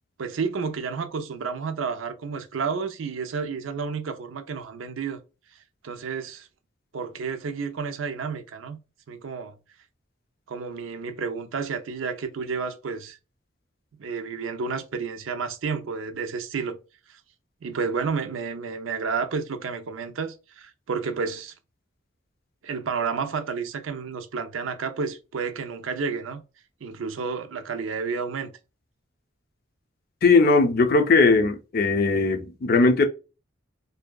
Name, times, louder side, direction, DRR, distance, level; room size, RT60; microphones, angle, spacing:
voice 1, 0.2-5.2 5.8-6.5 6.9-8.8 9.1-9.6 10.5-13.2 14.0-16.8 17.1-17.2 17.6-21.5 22.6-26.4 26.8-28.5, right 5 dB, 85° right, 0.5 m, -31 dB
voice 2, 30.2-33.1, left 3 dB, 50° left, 0.5 m, -19 dB
2.6 x 2.2 x 2.2 m
head